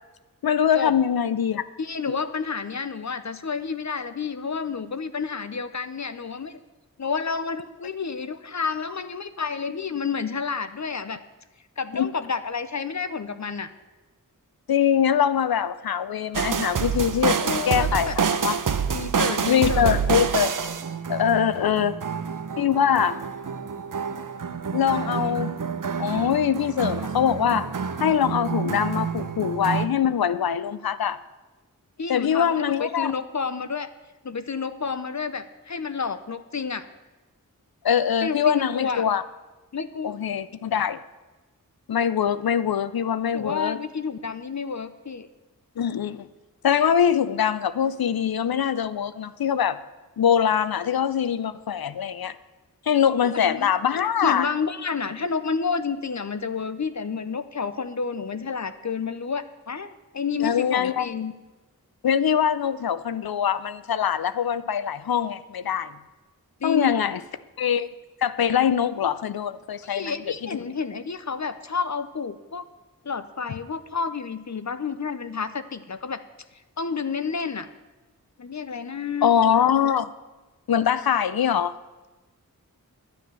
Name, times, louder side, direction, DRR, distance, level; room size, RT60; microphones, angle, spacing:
voice 1, 0.4-1.6 2.1-2.2 11.9-12.1 14.7-18.6 19.5-20.5 21.1-22.0 22.6-23.2 24.7-25.5 26.0-27.7 28.0-31.2 32.1-33.1 37.8-39.2 40.0-41.0 41.9-43.8 45.8-46.3 46.6-49.8 50.2-52.4 52.9-54.5 60.4-61.1 62.0-65.9 66.6-67.2 67.6-67.9 68.2-70.1 70.4-70.7 79.2-80.1 80.7-81.7, left 8 dB, 90° left, 15 dB, 0.6 m, -23 dB
voice 2, 1.8-6.6 7.0-11.2 11.8-13.7 17.4-18.2 18.9-19.9 32.0-33.9 34.2-36.9 38.2-39.0 39.7-40.2 43.3-45.3 53.3-53.7 54.2-61.3 66.6-67.0 69.8-72.7 73.0-76.2 76.8-77.7 78.4-79.3, left 5 dB, 50° left, 12 dB, 0.7 m, -30 dB
sound 1, 16.3-29.9, right 6 dB, 60° right, 0.7 m, -28 dB
10.5 x 9.5 x 6.8 m, 1.2 s
wide cardioid pair, 45°, 35 cm